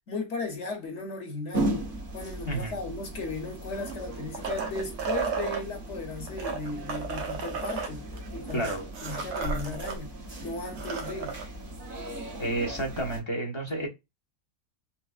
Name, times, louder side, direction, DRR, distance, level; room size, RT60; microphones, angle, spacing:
voice 1, 0.1-1.7 2.1-8.1 8.3-8.7 9.0-10.1 10.4-11.4 13.8-13.9, left 3 dB, 50° left, 1.0 m, -36 dB
sound 1, 1.5-13.2, right 1 dB, 40° right, 0.9 m, -37 dB
sound 2, 3.7-5.6 6.3-10.0 10.3-10.4 10.7-11.5 13.0-13.1, right 5 dB, 80° right, 1.3 m, -33 dB
voice 2, 8.5-8.8 12.4-13.9, right 1 dB, 30° left, 0.5 m, -30 dB
4.2 x 2.0 x 2.3 m
omnidirectional pair, 1.8 m